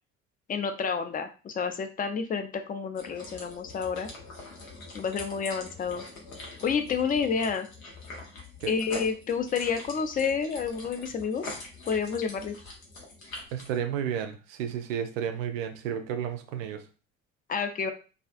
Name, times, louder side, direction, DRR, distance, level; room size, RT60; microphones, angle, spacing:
voice 1, 0.5-4.1 4.9-6.0 6.6-7.7 8.7-11.5 11.9-12.5 17.5-17.9, left 6 dB, 20° left, 7 dB, 0.4 m, -29 dB
sound 1, 3.0-13.8, left 2 dB, 80° left, 0.8 m, -44 dB
voice 2, 13.5-16.8, right 9 dB, 70° right, 7 dB, 0.5 m, -32 dB
2.4 x 2.4 x 2.4 m, 0.34 s
figure-of-eight pair, 50°, 40 cm